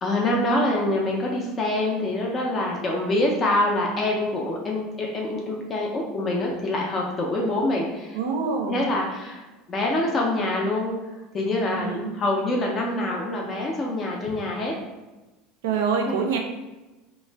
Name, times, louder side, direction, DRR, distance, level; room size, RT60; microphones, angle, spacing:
voice 1, 0.0-8.2 8.7-9.4 9.7-10.9 11.3-14.7 16.1-16.2, left 1 dB, 35° left, -1 dB, 0.5 m, -25 dB
voice 2, 8.1-8.8 11.8-12.3 15.6-16.4, right 5 dB, 75° right, 3 dB, 0.4 m, -26 dB
2.4 x 2.0 x 3.3 m, 1.1 s
hypercardioid pair, 80°, 0 cm